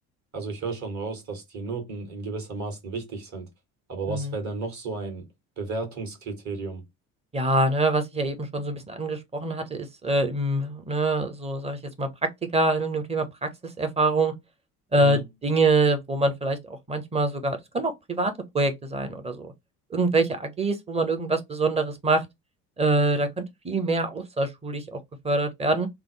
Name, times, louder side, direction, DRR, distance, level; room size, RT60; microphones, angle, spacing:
voice 1, 0.3-3.5 3.9-5.3 5.6-6.8 14.9-15.2, right 3 dB, 40° right, 1.8 m, -33 dB
voice 2, 7.3-13.5 13.8-14.3 14.9-16.6 16.9-19.5 19.9-22.3 22.8-25.0 25.2-25.9, right 2 dB, 15° right, 0.8 m, -25 dB
3.3 x 2.0 x 3.2 m
figure-of-eight pair, 55°, 45 cm